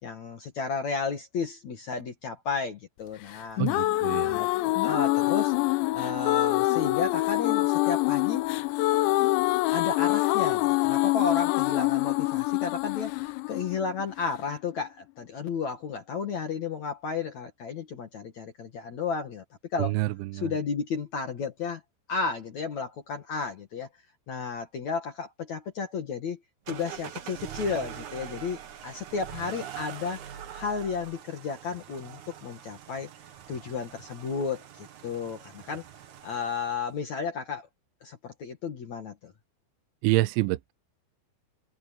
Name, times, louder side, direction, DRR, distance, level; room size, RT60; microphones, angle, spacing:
voice 1, 0.0-3.6 4.2-5.5 5.9-8.4 9.7-19.4 19.7-20.0 20.4-21.8 22.1-23.9 24.3-26.4 26.7-30.2 30.5-33.1 33.5-35.8 36.2-37.7 38.0-39.3, left 5 dB, 55° left, 2.2 m, -33 dB
sound 1, 3.3-14.4, left 19 dB, 80° left, 2.9 m, -25 dB
voice 2, 3.6-4.4 19.8-20.5 40.0-40.7, right 19 dB, 85° right, 2.9 m, -27 dB
sound 2, 26.7-36.9, right 9 dB, 60° right, 2.1 m, -43 dB
omnidirectional pair, 5.6 m